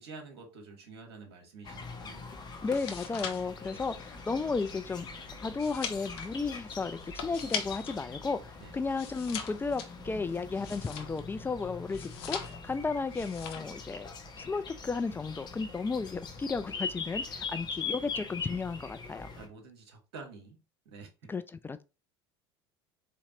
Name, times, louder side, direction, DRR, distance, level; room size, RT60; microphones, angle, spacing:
voice 1, 0.0-2.3 3.7-3.9 8.6-8.8 19.4-20.6 20.8-21.3, right 4 dB, 75° right, 1.2 m, -49 dB
sound 1, 1.6-19.5, left 4 dB, 30° left, 1.1 m, -42 dB
sound 2, 2.5-8.0 8.4-11.4 11.9-12.8 13.1-13.8 14.1-14.4, left 7 dB, 70° left, 0.8 m, -41 dB
voice 2, 2.6-5.1 5.4-14.1 14.4-19.3 21.3-21.8, left 4 dB, 15° left, 0.3 m, -34 dB
4.3 x 2.9 x 2.7 m
hypercardioid pair, 70°, 14 cm